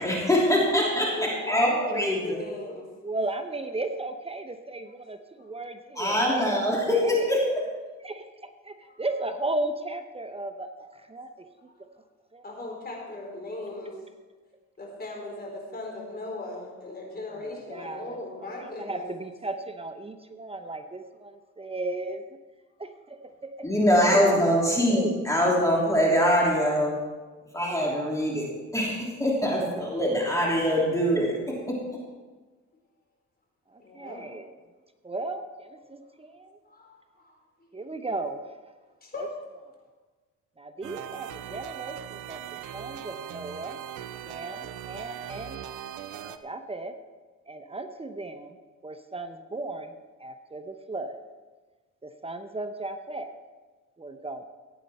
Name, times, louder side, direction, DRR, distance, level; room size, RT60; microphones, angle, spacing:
voice 1, 0.0-2.4 6.0-7.6 23.6-27.0 27.5-28.5 28.7-31.4 31.7-31.8, equal, 10° left, -4 dB, 3.2 m, -23 dB
voice 2, 1.1-2.9 5.4-5.5 8.8-9.0 12.4-13.9 14.8-19.0 23.9-24.3 33.8-34.2 36.7-37.3 37.6-37.7 39.0-39.3, left 2 dB, 30° left, 0 dB, 4.1 m, -37 dB
voice 3, 3.0-7.3 8.0-11.5 11.8-11.9 12.3-12.5 17.3-22.4 22.8-23.7 24.8-25.2 30.2-30.3 33.7-34.5 35.0-36.6 37.7-38.6 39.2-39.3 40.6-42.4 42.7-43.8 44.1-45.6 46.4-47.0 47.5-48.6 48.8-49.9 50.2-51.2 52.0-53.4 54.0-54.4, right 2 dB, 20° right, 7 dB, 0.9 m, -36 dB
sound 1, 40.8-46.4, right 10 dB, 85° right, 0.7 m, -39 dB
16.0 x 9.1 x 4.3 m, 1.3 s
cardioid pair, 90°, 30 cm